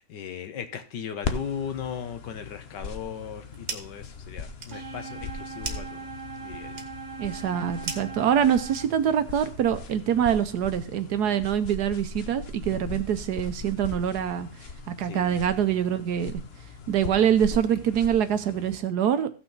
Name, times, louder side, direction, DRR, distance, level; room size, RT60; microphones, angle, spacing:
voice 1, 0.0-6.1 6.4-6.8 12.7-13.0 15.0-15.5, left 8 dB, 70° left, 9 dB, 1.6 m, -37 dB
sound 1, 1.2-18.8, left 4 dB, 50° left, 0.8 m, -39 dB
sound 2, 3.2-4.1 4.4-9.3, right 5 dB, 50° right, 1.5 m, -40 dB
sound 3, 4.7-8.8, right 4 dB, 85° right, 1.8 m, -40 dB
voice 2, 7.2-14.5 14.9-16.4 16.9-19.3, right 9 dB, 65° right, 11 dB, 1.2 m, -25 dB
15.0 x 5.9 x 3.9 m, 0.35 s
omnidirectional pair, 1.9 m